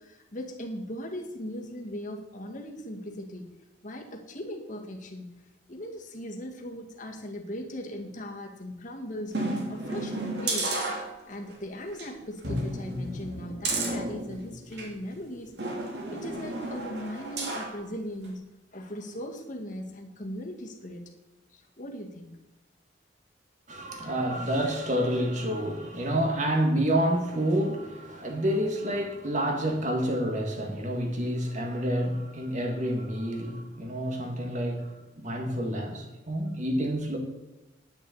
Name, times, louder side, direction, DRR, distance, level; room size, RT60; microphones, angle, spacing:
voice 1, 0.0-3.4 3.8-5.3 5.7-9.3 9.7-15.5 16.1-18.5 18.7-21.0 21.5-22.3, equal, 40° left, 2 dB, 1.9 m, -39 dB
sound 1, 9.3-11.5 11.9-12.1 12.4-14.9 15.6-17.8 18.2-18.3, right 2 dB, 60° right, 2.7 m, -32 dB
voice 2, 23.7-37.2, equal, 40° right, 2 dB, 2.2 m, -28 dB
10.5 x 6.9 x 8.2 m, 1.0 s
head